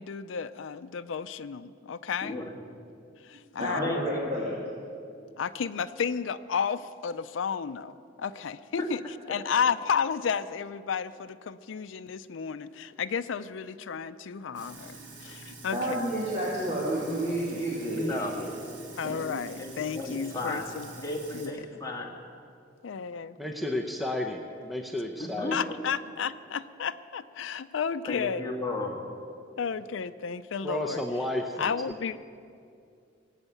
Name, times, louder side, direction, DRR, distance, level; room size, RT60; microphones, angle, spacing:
voice 1, 0.0-2.4 3.2-3.9 5.4-9.0 9.3-14.9 15.2-16.0 19.0-20.9 21.3-21.5 22.8-23.4 25.5-28.4 29.6-31.0 31.6-32.2, left 6 dB, 80° left, 11 dB, 0.5 m, -32 dB
voice 2, 2.2-2.5 3.8-4.3 17.9-18.3 19.6-20.7 21.0-22.2 25.2-25.6 28.0-28.9, left 2 dB, 20° left, -1 dB, 1.8 m, -34 dB
voice 3, 3.6-4.6 15.7-18.5 19.0-19.2, right 1 dB, 35° right, -6 dB, 2.4 m, -30 dB
Sink (filling or washing), 14.5-21.5, right 3 dB, 65° right, 2.3 m, -46 dB
voice 4, 23.4-25.6 30.6-31.7, left 1 dB, ahead, 3 dB, 0.7 m, -32 dB
19.0 x 8.1 x 8.3 m, 2.4 s
head